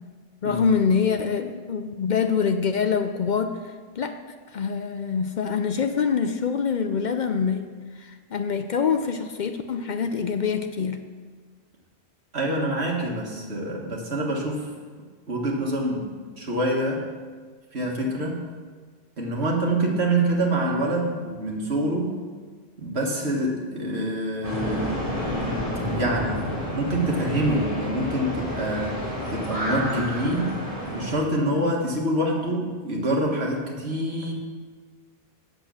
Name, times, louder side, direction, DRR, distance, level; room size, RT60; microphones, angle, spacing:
voice 1, 0.4-4.2 4.5-7.7 8.0-11.0, left 6 dB, 55° left, 7 dB, 0.6 m, -25 dB
voice 2, 12.3-14.7 15.3-16.1 16.4-17.0 17.7-18.5 19.2-22.2 22.8-25.1 25.9-29.0 29.3-30.6 30.9-34.3, right 1 dB, 80° right, -1 dB, 1.9 m, -26 dB
sound 1, 24.4-31.1, equal, 35° right, 3.0 m, -29 dB
8.0 x 7.7 x 6.3 m, 1.5 s
omnidirectional pair, 1.1 m